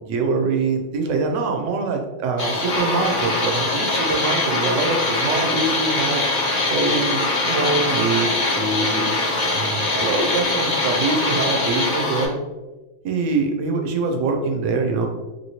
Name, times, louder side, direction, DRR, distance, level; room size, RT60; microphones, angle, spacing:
voice 1, 0.1-6.2 6.7-7.2 7.4-12.4 13.0-15.1, right 3 dB, 90° right, 3 dB, 0.9 m, -24 dB
sound 1, 2.4-12.3, left 2 dB, 45° left, 0.8 m, -22 dB
2.9 x 2.9 x 2.7 m, 1.1 s
omnidirectional pair, 1.2 m